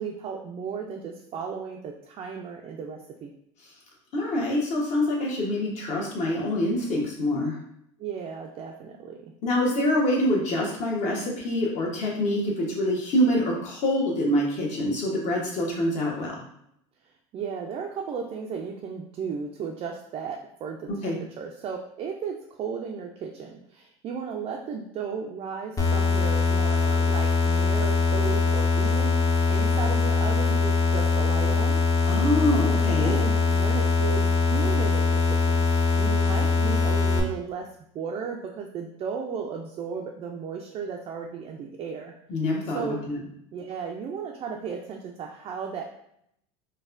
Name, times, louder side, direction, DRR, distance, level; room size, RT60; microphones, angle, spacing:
voice 1, 0.0-3.3 8.0-9.3 17.3-29.2 29.5-31.8 32.7-37.7 37.9-42.1 42.7-43.0 43.5-45.8, right 6 dB, 35° right, 0 dB, 0.4 m, -35 dB
voice 2, 4.1-7.5 9.4-16.4 20.9-21.1 32.1-33.2 42.3-43.2, left 1 dB, 45° left, -3 dB, 1.2 m, -25 dB
sound 1, 25.8-37.2, left 4 dB, 20° left, 0.6 m, -22 dB
4.0 x 2.2 x 2.5 m, 0.72 s
supercardioid pair, 120°, 16 cm